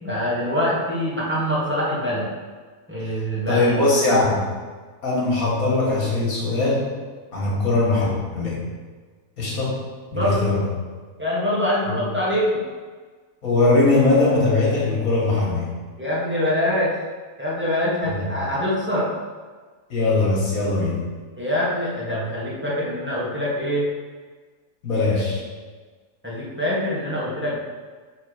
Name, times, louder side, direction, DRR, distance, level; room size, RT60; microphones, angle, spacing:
voice 1, 0.0-2.3 2.9-3.8 10.1-10.6 11.2-12.6 16.0-16.9 17.4-19.1 21.4-23.9 25.1-25.2 26.2-27.6, left 1 dB, 10° right, -7 dB, 1.3 m, -24 dB
voice 2, 3.5-4.4 5.0-6.9 7.3-8.6 9.4-9.8 10.1-10.6 11.9-12.0 13.4-15.7 18.1-18.3 19.9-21.0 24.8-25.4, left 2 dB, 75° left, -4 dB, 2.0 m, -20 dB
5.9 x 3.3 x 5.0 m, 1.4 s
omnidirectional pair, 1.5 m